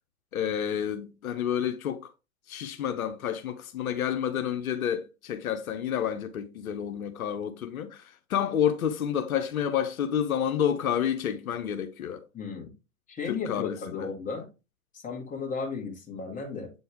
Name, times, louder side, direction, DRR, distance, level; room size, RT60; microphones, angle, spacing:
voice 1, 0.3-2.1 2.5-12.2 13.3-14.1, left 9 dB, 80° left, 0.8 m, -29 dB
voice 2, 12.3-12.7 13.1-14.5 14.9-16.7, left 5 dB, 20° left, 2.1 m, -35 dB
7.8 x 4.2 x 3.4 m
hypercardioid pair, 115°, 42 cm